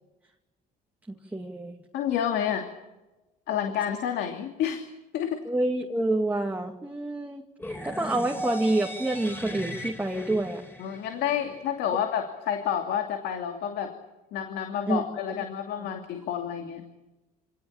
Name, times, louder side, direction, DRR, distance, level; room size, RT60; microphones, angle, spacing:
voice 1, 1.3-1.8 5.4-7.4 7.8-10.6 14.9-15.0, right 2 dB, 10° right, 2 dB, 2.2 m, -27 dB
voice 2, 1.9-2.7 3.5-4.8 5.1-5.4 10.8-13.9 14.3-16.8, left 9 dB, 80° left, 5 dB, 2.7 m, -29 dB
sound 1, 7.6-11.6, equal, 15° left, 4.7 m, -37 dB
26.5 x 18.0 x 8.8 m, 1.0 s
cardioid pair, 110°, 17 cm